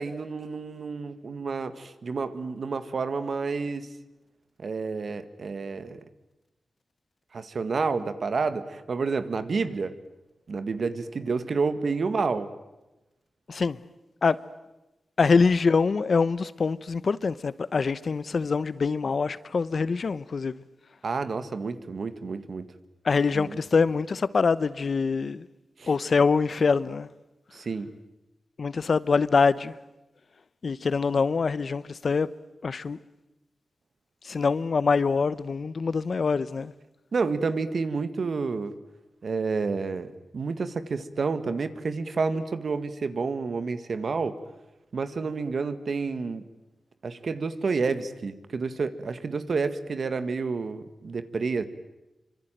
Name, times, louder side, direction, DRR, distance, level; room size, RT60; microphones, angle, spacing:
voice 1, 0.0-3.9 4.6-6.0 7.3-10.0 10.5-12.5 21.0-22.7 23.3-23.6 25.8-25.9 27.5-27.9 37.1-38.7 39.2-44.4 44.9-46.4 47.0-51.6, right 4 dB, 65° right, 1.8 m, -29 dB
voice 2, 15.2-20.5 23.0-25.5 25.9-27.1 28.6-29.7 30.6-32.3 32.6-33.0 34.2-36.7, left 4 dB, 60° left, 0.9 m, -24 dB
25.5 x 25.0 x 9.2 m
wide cardioid pair, 85°, 0 cm